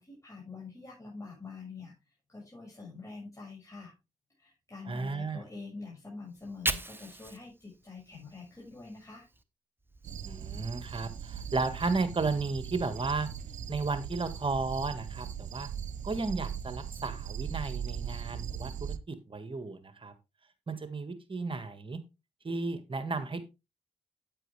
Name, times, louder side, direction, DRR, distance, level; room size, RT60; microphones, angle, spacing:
voice 1, 0.0-1.9 2.3-3.9 4.4-9.2, left 4 dB, 25° left, -4 dB, 6.4 m, -46 dB
voice 2, 4.9-5.4 10.2-13.3 13.7-15.7 16.0-20.1 20.7-22.0 22.4-23.4, right 3 dB, 40° right, 10 dB, 1.8 m, -34 dB
Fire, 6.3-9.4 9.8-11.9, right 2 dB, 15° right, 1.2 m, -40 dB
sound 1, 10.0-19.0, right 8 dB, 75° right, 0.9 m, -39 dB
9.2 x 8.9 x 3.4 m, 0.25 s
supercardioid pair, 50°, 13 cm